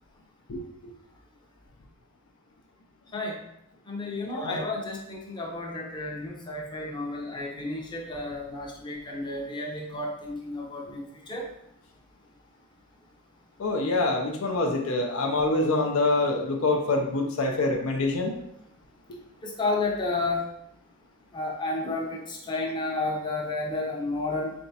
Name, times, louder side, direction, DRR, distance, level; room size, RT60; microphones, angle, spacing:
voice 1, 3.9-11.5 19.4-20.4 21.3-24.5, left 2 dB, 20° left, -2 dB, 0.6 m, -31 dB
voice 2, 13.6-18.3, left 2 dB, 65° left, 2 dB, 0.5 m, -25 dB
3.9 x 3.4 x 2.7 m, 0.79 s
head